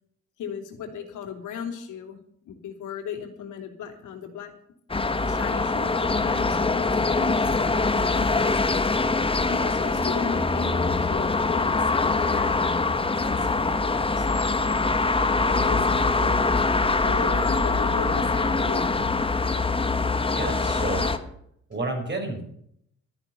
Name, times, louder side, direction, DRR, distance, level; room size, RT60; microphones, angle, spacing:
voice 1, 0.4-2.2 2.4-4.5 4.9-8.9 9.4-12.8 13.3-14.6 15.4-16.5 17.0-19.1, left 6 dB, 80° left, 4 dB, 3.0 m, -37 dB
sound 1, 4.9-21.2, left 3 dB, 20° left, 1.4 m, -23 dB
voice 2, 20.3-21.2 21.7-22.4, right 2 dB, 35° right, 3 dB, 5.7 m, -30 dB
13.5 x 10.0 x 7.0 m, 0.70 s
cardioid pair, 90°, 30 cm